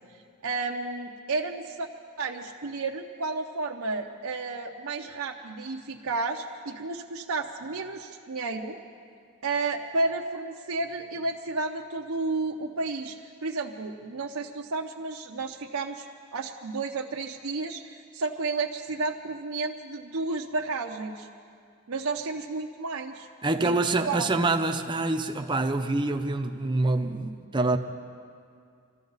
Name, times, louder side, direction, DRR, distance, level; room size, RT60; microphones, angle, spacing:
voice 1, 0.4-1.9 2.2-8.8 9.4-13.2 13.4-16.0 16.3-21.3 21.9-23.3 23.6-23.8 24.1-24.3, right 3 dB, 75° right, 0.8 m, -32 dB
voice 2, 23.4-27.8, right 2 dB, 20° right, 0.7 m, -26 dB
24.5 x 14.0 x 4.0 m
head